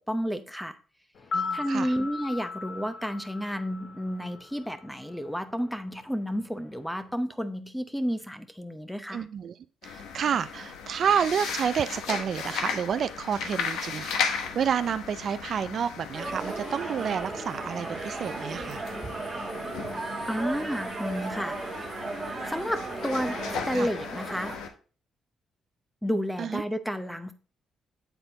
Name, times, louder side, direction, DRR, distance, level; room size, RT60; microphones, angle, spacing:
voice 1, 0.1-0.8 1.5-9.2 20.2-21.9 22.5-23.4 23.7-24.5 26.0-27.3, equal, ahead, 11 dB, 0.8 m, -31 dB
sound 1, 1.2-5.3 5.6-5.7, left 4 dB, 60° left, 1.0 m, -37 dB
voice 2, 1.3-1.9 9.1-9.6 9.8-18.8 23.7-23.9 26.4-26.6, right 8 dB, 60° right, 13 dB, 0.3 m, -29 dB
sound 2, 9.8-24.7, left 6 dB, 90° left, 0.9 m, -36 dB
sound 3, 16.1-24.6, right 3 dB, 20° right, 1.6 m, -36 dB
7.9 x 4.1 x 4.0 m, 0.37 s
cardioid pair, 90°, 0 cm